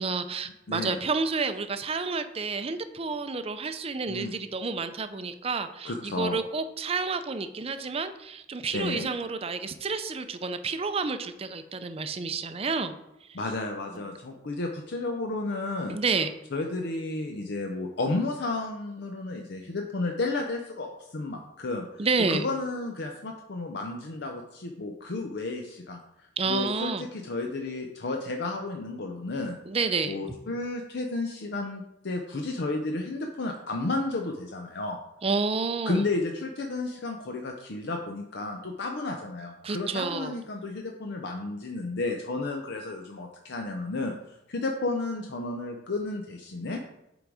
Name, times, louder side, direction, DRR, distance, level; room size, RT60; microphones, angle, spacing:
voice 1, 0.0-12.9 13.9-14.0 15.9-16.3 22.0-22.5 26.4-27.0 29.7-30.2 35.2-36.0 39.6-40.3, right 4 dB, 30° right, 10 dB, 0.5 m, -30 dB
voice 2, 0.7-1.0 4.1-4.3 5.8-6.4 8.7-9.1 13.3-16.0 16.5-29.6 30.0-35.0 35.9-46.8, left 2 dB, 60° left, 3 dB, 0.6 m, -32 dB
8.0 x 3.9 x 4.8 m, 0.89 s
head